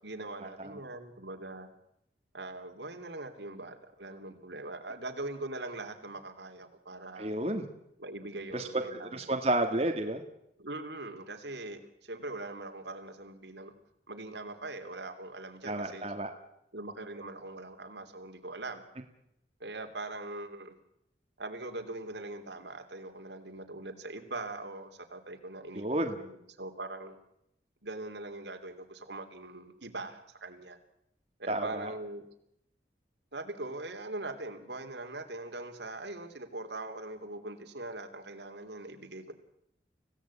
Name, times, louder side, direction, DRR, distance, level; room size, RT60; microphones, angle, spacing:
voice 1, 0.0-1.7 2.3-7.4 8.0-9.3 10.6-13.7 14.1-16.1 16.7-18.8 19.6-20.8 21.4-27.2 27.8-30.8 31.4-32.2 33.3-39.3, right 2 dB, 85° right, 5 dB, 3.1 m, -41 dB
voice 2, 7.2-7.6 8.5-10.2 15.6-16.3 25.8-26.2 31.5-31.9, right 1 dB, 35° right, 4 dB, 1.8 m, -31 dB
25.0 x 17.0 x 8.5 m, 0.79 s
head